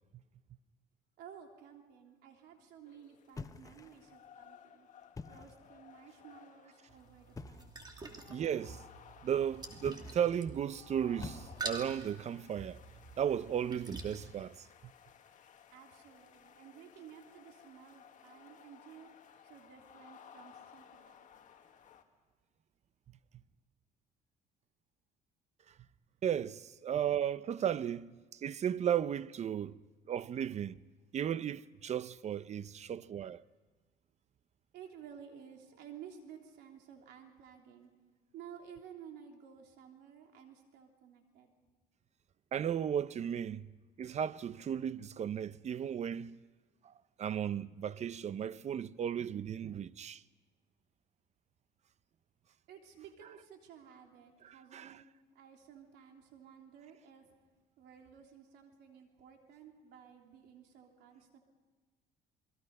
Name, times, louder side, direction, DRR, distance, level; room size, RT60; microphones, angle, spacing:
voice 1, 1.2-4.9 5.2-7.7 15.7-21.3 32.8-33.0 34.7-37.9 38.3-41.5 52.7-55.0 55.3-57.3 57.8-61.4, right 8 dB, 85° right, 3.3 m, -54 dB
sound 1, 2.9-22.0, left 8 dB, 50° left, 1.8 m, -59 dB
sound 2, 3.4-4.2 5.0-5.7 7.3-7.8 9.8-10.4 11.2-11.9, left 4 dB, 20° left, 0.8 m, -48 dB
sound 3, 6.9-14.2, right 3 dB, 25° right, 2.9 m, -47 dB
voice 2, 8.3-8.8 9.2-12.8 13.2-14.6 26.2-29.8 30.1-30.8 31.1-33.4 42.5-43.7 44.0-46.4 47.2-50.2 54.4-55.0, right 9 dB, 40° right, 0.6 m, -35 dB
28.5 x 22.0 x 5.4 m
cardioid pair, 110°, 17 cm